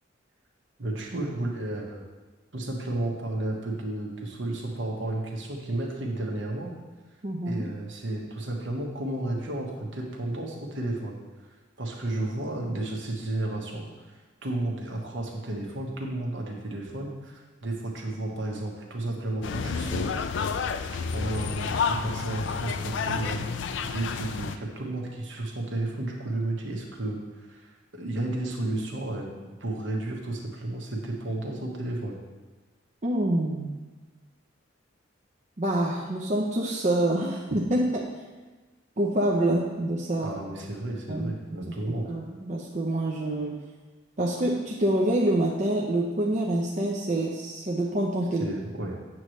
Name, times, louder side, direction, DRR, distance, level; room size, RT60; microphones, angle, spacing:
voice 1, 0.8-2.0 2.5-6.8 7.4-11.2 11.8-20.5 20.9-29.3 29.6-32.2 40.2-42.1 48.4-49.0, right 2 dB, 65° right, -1 dB, 1.3 m, -32 dB
voice 2, 7.2-7.7 33.0-33.7 35.6-38.1 39.0-40.3 41.1-41.3 41.7-43.6 44.2-48.5, right 1 dB, 35° right, -3 dB, 0.6 m, -26 dB
sound 1, 19.4-24.6, left 5 dB, 60° left, 0.4 m, -30 dB
8.3 x 3.1 x 6.4 m, 1.3 s
head